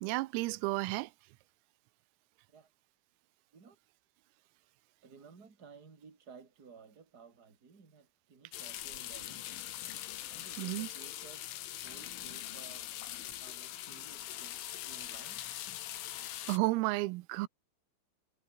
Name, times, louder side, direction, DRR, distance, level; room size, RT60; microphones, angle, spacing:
voice 1, 0.0-1.1 10.6-10.9 16.5-17.5, right 21 dB, 90° right, 3.6 m, -32 dB
voice 2, 5.0-9.5 10.3-12.9 13.4-15.4, right 5 dB, 20° right, 3.3 m, -56 dB
sound 1, 8.5-16.6, left 13 dB, 70° left, 4.1 m, -42 dB
omnidirectional pair, 6.0 m